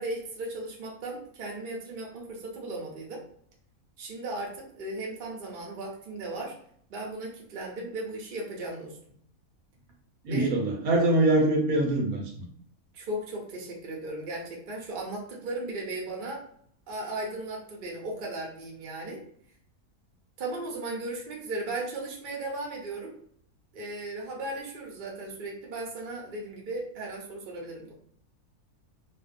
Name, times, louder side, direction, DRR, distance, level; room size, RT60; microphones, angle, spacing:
voice 1, 0.0-3.2 4.0-6.5 6.9-9.0 10.3-10.5 12.9-16.4 16.9-19.2 20.4-23.1 23.7-27.9, right 2 dB, 45° right, -2 dB, 0.7 m, -36 dB
voice 2, 10.2-12.4, right 2 dB, 75° right, 0 dB, 1.1 m, -24 dB
2.5 x 2.1 x 2.5 m, 0.63 s
omnidirectional pair, 1.6 m